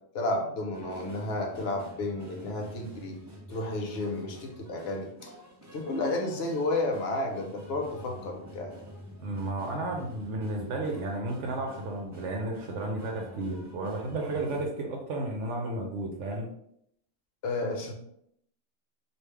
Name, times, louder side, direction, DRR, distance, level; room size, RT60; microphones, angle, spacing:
voice 1, 0.1-3.2 3.5-5.3 5.7-8.7 17.4-17.9, left 2 dB, 60° left, 2 dB, 0.9 m, -32 dB
sound 1, 0.7-14.7, left 1 dB, 20° right, 0.5 m, -47 dB
voice 2, 9.2-16.5, right 2 dB, 70° right, 1 dB, 0.9 m, -33 dB
3.2 x 2.5 x 3.3 m, 0.73 s
omnidirectional pair, 1.3 m